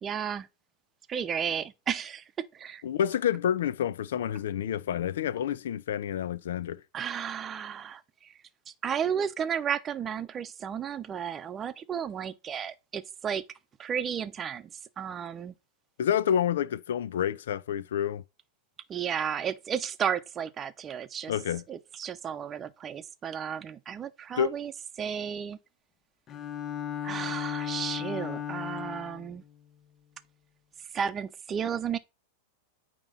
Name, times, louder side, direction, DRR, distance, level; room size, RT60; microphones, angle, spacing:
voice 1, 0.0-0.5 1.1-2.2 2.5-2.8 6.9-8.3 8.7-13.4 13.8-14.7 15.0-15.5 18.9-21.3 21.7-25.6 27.0-29.4 30.9-32.0, right 8 dB, 25° right, 0.7 m, -33 dB
voice 2, 2.8-6.8 16.0-18.2 21.3-21.6 24.4-24.5, left 9 dB, 75° left, 0.5 m, -28 dB
Bowed string instrument, 26.3-29.3, left 9 dB, 30° left, 0.8 m, -35 dB
9.0 x 3.0 x 5.5 m
hypercardioid pair, 115°, 0 cm